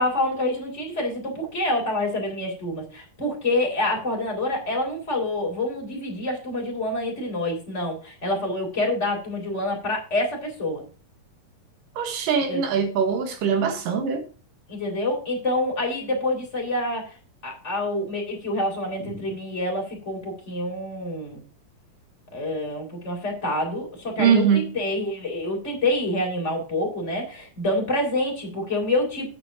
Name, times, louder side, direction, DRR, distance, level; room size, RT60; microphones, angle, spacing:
voice 1, 0.0-10.8 12.5-12.6 14.7-17.1 17.4-21.4 22.3-29.3, left 1 dB, 20° left, 3.5 m, -27 dB
voice 2, 12.0-14.2 19.1-19.2 24.2-24.7, right 7 dB, 75° right, 3.0 m, -22 dB
8.9 x 6.0 x 6.0 m
omnidirectional pair, 4.0 m